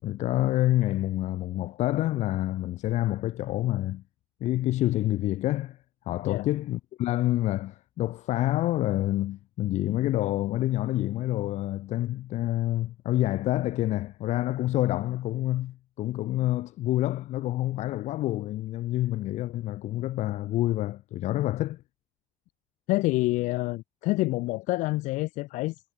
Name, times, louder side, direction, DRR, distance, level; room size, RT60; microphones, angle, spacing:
voice 1, 0.0-4.0 4.4-5.8 6.1-21.8, left 15 dB, 65° left, 5.9 m, -27 dB
voice 2, 22.9-25.8, left 20 dB, 85° left, 5.2 m, -27 dB
cardioid pair, 145°, 13 cm